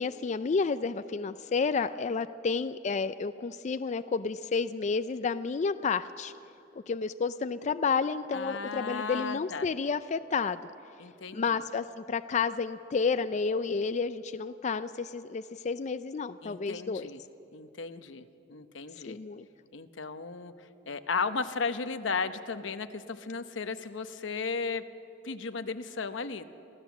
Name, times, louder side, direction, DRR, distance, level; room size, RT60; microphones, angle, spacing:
voice 1, 0.0-6.3 6.9-10.6 11.3-17.1 19.0-19.4, left 5 dB, 40° left, 12 dB, 0.4 m, -30 dB
voice 2, 8.3-9.7 11.0-11.6 16.4-17.2 17.5-19.2 19.7-24.8 25.2-26.4, left 4 dB, 90° left, 10 dB, 0.9 m, -35 dB
25.5 x 14.5 x 7.2 m, 2.8 s
head